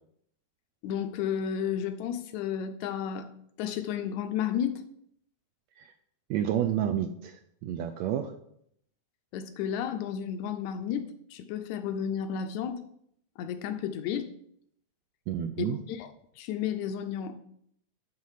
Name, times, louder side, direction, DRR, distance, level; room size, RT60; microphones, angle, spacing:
voice 1, 0.8-3.3 3.6-4.8 9.3-12.8 13.4-14.3 15.6-16.1 16.4-17.4, left 8 dB, 80° left, 8 dB, 1.9 m, -32 dB
voice 2, 6.3-8.3 15.3-15.8, right 10 dB, 80° right, 7 dB, 1.6 m, -30 dB
9.9 x 4.0 x 5.6 m, 0.70 s
omnidirectional pair, 3.5 m